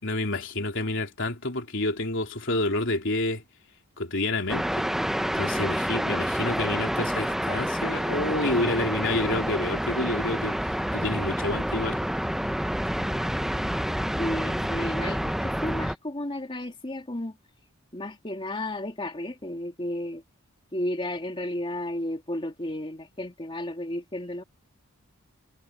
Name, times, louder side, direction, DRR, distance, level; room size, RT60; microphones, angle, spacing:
voice 1, 0.0-3.4 4.0-4.9 5.3-10.6 10.9-12.0, left 2 dB, 60° left, 3.7 m, -29 dB
sound 1, 4.5-15.9, equal, ahead, 0.5 m, -28 dB
voice 2, 14.2-17.4 17.9-20.2 20.7-24.4, left 1 dB, 25° left, 2.6 m, -33 dB
head